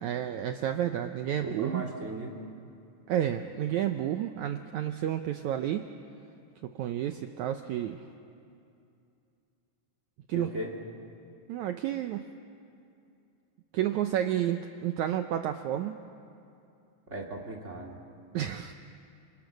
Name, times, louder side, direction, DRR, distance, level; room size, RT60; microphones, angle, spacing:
voice 1, 0.0-1.8 3.1-5.8 6.8-8.0 10.3-10.5 11.5-12.2 13.7-16.0 18.3-18.7, right 11 dB, 80° right, 7 dB, 1.7 m, -30 dB
voice 2, 1.4-2.4 10.3-10.7 17.1-18.0, right 2 dB, 20° right, 0 dB, 2.5 m, -37 dB
28.0 x 27.0 x 6.5 m, 2.5 s
omnidirectional pair, 4.2 m